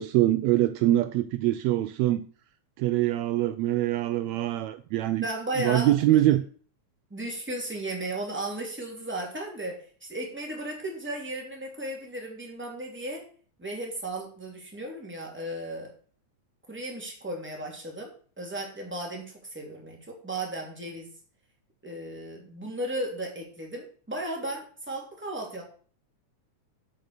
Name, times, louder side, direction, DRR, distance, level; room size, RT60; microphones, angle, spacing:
voice 1, 0.0-2.2 2.8-5.3 5.6-6.4, right 14 dB, 80° right, 1.8 m, -24 dB
voice 2, 5.2-6.3 7.1-9.8 10.1-13.2 13.6-15.9 16.7-18.1 18.4-21.1 21.8-25.6, right 1 dB, 5° right, 2.5 m, -35 dB
8.3 x 6.6 x 6.6 m
omnidirectional pair, 3.3 m